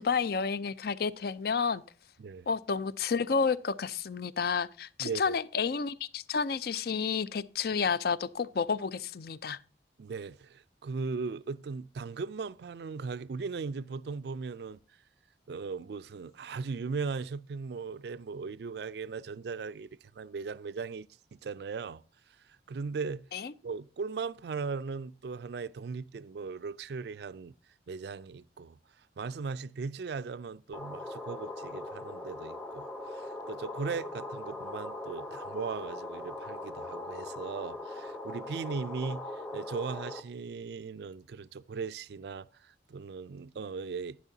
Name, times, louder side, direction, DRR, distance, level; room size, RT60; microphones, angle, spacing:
voice 1, 0.0-1.8 2.5-9.6 23.3-23.5, left 5 dB, 55° left, 0.4 m, -30 dB
voice 2, 5.0-5.4 10.0-14.8 15.5-19.9 20.2-22.0 22.7-23.2 23.6-27.5 27.9-28.8 29.2-39.2 39.5-42.5 42.9-44.2, right 4 dB, 60° right, 0.4 m, -38 dB
sound 1, 30.7-40.2, left 2 dB, 5° left, 0.7 m, -40 dB
11.0 x 10.0 x 2.7 m
head